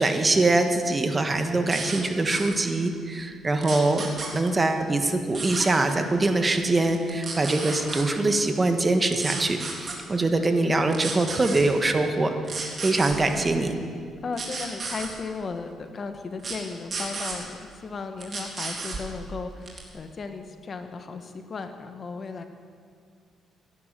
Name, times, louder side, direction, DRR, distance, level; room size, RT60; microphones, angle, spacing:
voice 1, 0.0-4.1 4.3-13.8, right 2 dB, 25° right, 6 dB, 1.5 m, -23 dB
sound 1, 1.7-2.0 2.3-2.5 3.6-4.3 5.3-5.7 6.9-8.0 9.1-9.9 10.9-11.6 12.4-13.1 14.3-15.1 16.4-16.6 16.9-17.4 18.2-19.0 19.7-19.9, right 4 dB, 45° right, 3.6 m, -33 dB
voice 2, 14.2-22.4, left 4 dB, 45° left, 7 dB, 1.4 m, -35 dB
16.5 x 11.0 x 7.6 m, 2.1 s
cardioid pair, 90°, 0 cm